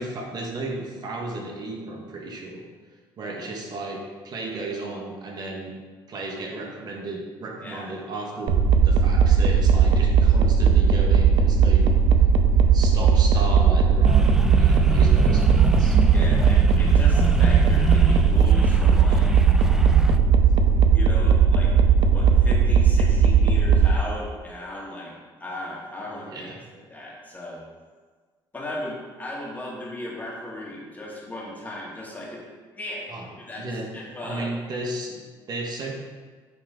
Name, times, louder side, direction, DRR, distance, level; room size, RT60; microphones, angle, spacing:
voice 1, 0.0-2.6 3.2-5.7 6.1-8.6 8.8-11.9 12.7-16.0 26.3-26.6 33.1-33.3 33.6-34.0 34.2-35.9, right 2 dB, 50° right, 0 dB, 1.2 m, -34 dB
sound 1, 8.5-23.9, right 6 dB, 75° right, 0.5 m, -17 dB
sound 2, 14.0-20.2, right 1 dB, 5° right, 0.4 m, -29 dB
voice 2, 16.1-19.3 20.9-21.7 22.1-26.5 26.9-27.6 28.5-32.4 32.7-33.1 33.4-33.7 33.9-34.5, left 1 dB, 20° left, -4 dB, 1.9 m, -36 dB
8.5 x 3.5 x 3.7 m, 1.4 s
cardioid pair, 95°, 9 cm